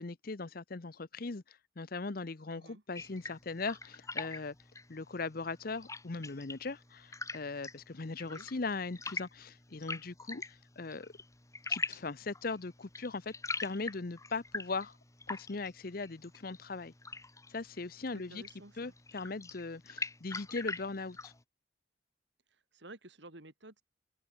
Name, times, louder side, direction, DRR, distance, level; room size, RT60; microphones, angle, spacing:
voice 1, 0.0-4.5 4.9-11.1 11.7-13.3 13.6-15.0 15.3-16.9 17.5-18.4 18.8-21.3, left 3 dB, 50° left, 0.8 m, -39 dB
voice 2, 2.5-2.8 8.2-8.5 18.1-18.9 22.5-23.8, right 2 dB, 70° right, 3.1 m, -53 dB
sound 1, 3.0-21.4, left 3 dB, 15° left, 2.1 m, -44 dB
open air
head